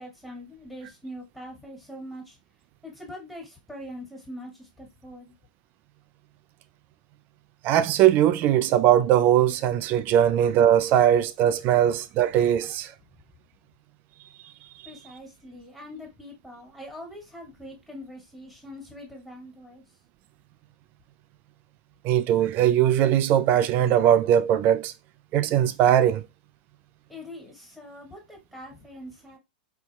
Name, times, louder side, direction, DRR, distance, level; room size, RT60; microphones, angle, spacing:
voice 1, 0.0-2.4 2.8-5.3 14.9-19.8 27.1-29.4, left 1 dB, ahead, 1.8 m, -43 dB
voice 2, 7.6-12.9 22.0-24.9 25.3-26.2, right 11 dB, 40° right, 0.4 m, -20 dB
4.3 x 2.7 x 2.2 m
hypercardioid pair, 110°, 5 cm